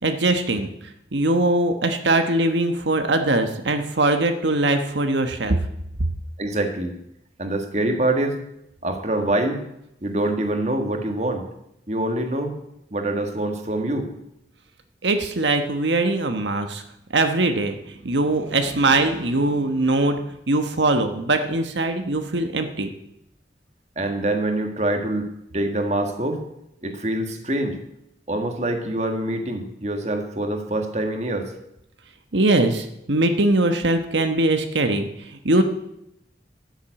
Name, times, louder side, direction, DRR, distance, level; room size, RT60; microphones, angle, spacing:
voice 1, 0.0-0.7 1.1-5.6 15.0-16.8 17.1-22.9 32.3-35.6, right 2 dB, 90° right, 6 dB, 1.2 m, -21 dB
voice 2, 6.4-6.9 7.4-8.4 8.8-9.6 10.0-11.5 11.9-12.5 12.9-14.1 23.9-26.4 26.8-27.8 28.3-31.5, right 1 dB, 40° right, 5 dB, 1.7 m, -25 dB
12.5 x 7.3 x 9.0 m, 0.82 s
head